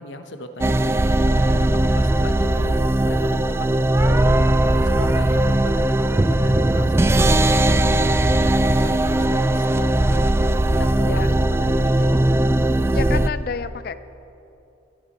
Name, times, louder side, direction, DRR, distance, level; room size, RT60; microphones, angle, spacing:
voice 1, 0.0-2.8 3.0-4.5 4.8-10.5 10.8-12.3, left 2 dB, 75° left, 8 dB, 1.0 m, -37 dB
sound 1, 0.6-13.3, right 1 dB, 15° right, 0.3 m, -18 dB
voice 2, 12.9-14.0, left 5 dB, 55° left, 14 dB, 0.5 m, -29 dB
23.5 x 11.0 x 4.2 m, 2.8 s
head